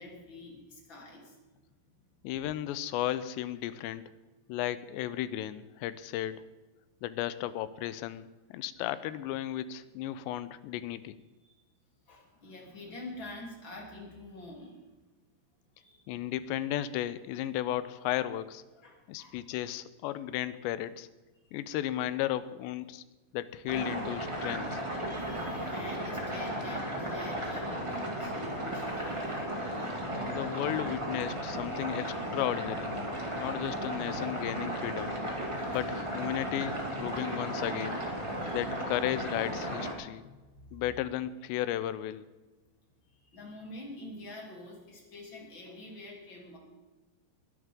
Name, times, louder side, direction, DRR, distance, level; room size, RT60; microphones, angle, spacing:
voice 1, 0.0-1.4 11.4-11.6 12.1-14.9 15.7-16.0 18.8-19.4 21.4-21.5 25.0-30.0 35.6-35.8 36.3-36.5 37.1-37.3 38.3-38.6 40.1-40.8 43.1-46.6, left 1 dB, 30° left, -1 dB, 3.4 m, -47 dB
voice 2, 2.2-4.0 4.5-6.4 7.0-11.1 16.1-18.6 19.1-21.1 21.5-23.0 23.3-24.8 30.2-32.9 33.4-35.2 35.7-38.0 38.5-40.2 40.7-42.3, left 12 dB, 90° left, 14 dB, 2.9 m, -34 dB
sound 1, 23.7-39.9, right 1 dB, 15° right, 0.9 m, -35 dB
21.0 x 11.0 x 3.7 m, 1.2 s
omnidirectional pair, 4.9 m